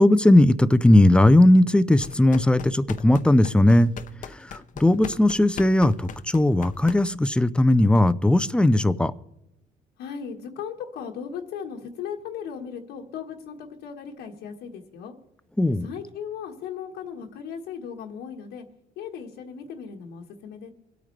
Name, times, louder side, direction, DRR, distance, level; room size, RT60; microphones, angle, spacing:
voice 1, 0.0-3.9 4.5-9.1 15.6-15.9, left 1 dB, 5° left, 0.5 m, -18 dB
sound 1, 2.0-7.3, left 7 dB, 50° left, 0.8 m, -40 dB
voice 2, 10.0-15.1 15.7-18.6 19.0-20.7, left 7 dB, 85° left, 1.5 m, -37 dB
25.5 x 8.8 x 3.3 m
cardioid pair, 110°, 17 cm